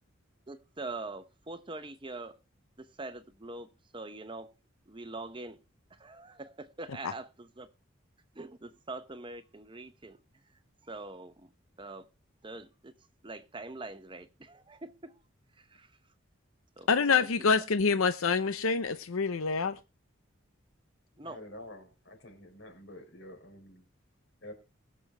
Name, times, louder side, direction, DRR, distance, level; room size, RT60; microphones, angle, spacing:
voice 1, 0.5-2.3 2.8-4.5 4.9-5.6 5.9-7.7 8.3-10.2 10.8-11.5 11.8-12.1 12.4-12.9 13.2-15.2 15.6-16.0 16.8-17.3 21.2-21.4, right 2 dB, 25° right, 0.8 m, -43 dB
voice 2, 16.9-19.8, left 5 dB, 90° left, 0.7 m, -26 dB
voice 3, 21.2-23.8 24.4-24.5, left 1 dB, 60° left, 4.0 m, -48 dB
21.0 x 7.0 x 3.4 m
head